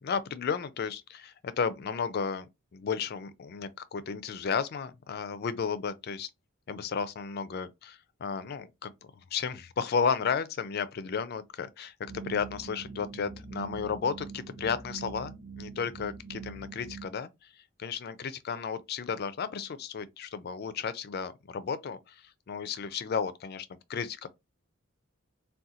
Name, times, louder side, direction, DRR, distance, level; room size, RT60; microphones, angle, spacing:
voice 1, 0.0-6.3 6.7-24.3, left 6 dB, 50° left, 0.4 m, -33 dB
sound 1, 12.1-17.1, right 6 dB, 80° right, 0.8 m, -43 dB
3.7 x 2.2 x 2.7 m
head